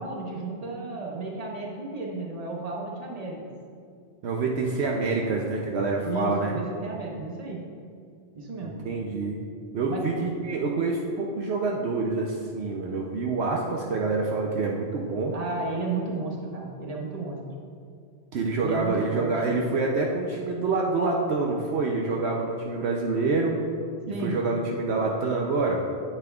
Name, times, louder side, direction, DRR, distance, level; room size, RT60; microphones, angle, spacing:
voice 1, 0.0-3.4 6.0-7.6 8.3-8.7 9.9-10.1 15.3-17.4 18.6-19.3 24.1-24.4, right 3 dB, 35° right, -1 dB, 1.0 m, -33 dB
voice 2, 4.2-6.5 8.6-9.4 9.7-15.4 18.3-23.6 24.2-25.8, right 3 dB, 70° right, 0 dB, 0.9 m, -27 dB
8.5 x 8.4 x 2.3 m, 2.3 s
omnidirectional pair, 1.2 m